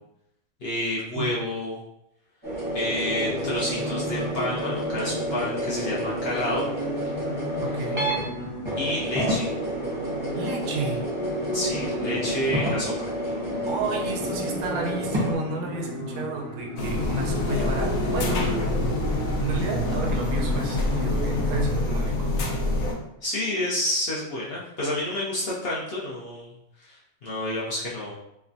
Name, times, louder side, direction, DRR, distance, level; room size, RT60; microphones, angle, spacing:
voice 1, 0.6-1.8 2.7-6.7 8.8-9.5 11.5-13.1 23.2-28.1, left 1 dB, 60° left, -7 dB, 0.6 m, -29 dB
sound 1, 2.4-8.3 8.6-15.3, right 1 dB, 30° right, 0.6 m, -30 dB
sound 2, 2.8-21.6, left 1 dB, 35° left, 1.0 m, -35 dB
voice 2, 7.6-8.2 10.3-11.0 13.7-18.5 19.4-22.3, right 4 dB, 90° right, 1 dB, 1.1 m, -31 dB
sound 3, 16.8-22.9, left 2 dB, 85° left, 1.0 m, -26 dB
3.2 x 2.1 x 2.5 m, 0.83 s
omnidirectional pair, 1.5 m